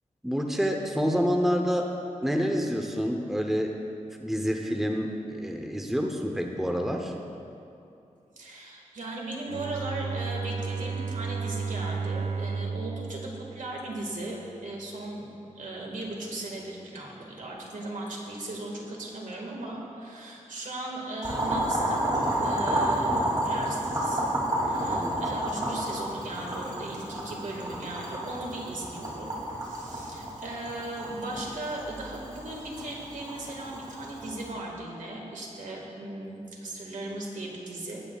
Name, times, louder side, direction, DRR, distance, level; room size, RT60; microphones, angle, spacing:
voice 1, 0.2-1.9 2.2-3.7 4.2-7.1 24.9-25.4, equal, 5° right, 3 dB, 0.7 m, -28 dB
voice 2, 8.4-15.3 15.6-38.0, right 2 dB, 75° right, -1 dB, 1.7 m, -37 dB
Bowed string instrument, 9.5-14.5, right 5 dB, 55° right, 0.4 m, -33 dB
Boiling, 21.2-34.5, right 1 dB, 30° right, 2.5 m, -30 dB
17.0 x 8.7 x 2.3 m, 2.6 s
wide cardioid pair, 105°, 13 cm